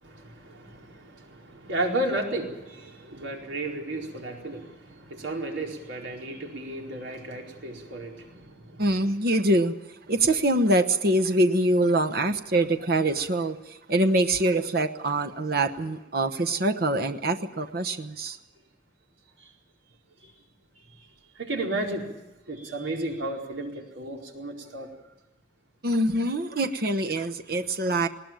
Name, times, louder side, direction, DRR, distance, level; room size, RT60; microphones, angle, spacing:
voice 1, 0.0-8.9 19.4-19.5 20.2-20.3 20.9-21.1 21.3-22.1 22.5-24.9, right 1 dB, 90° right, 1 dB, 4.5 m, -33 dB
voice 2, 8.8-9.7 10.1-13.6 13.9-18.4 25.8-28.1, right 1 dB, 55° right, 6 dB, 1.0 m, -24 dB
20.0 x 19.0 x 9.0 m, 1.0 s
head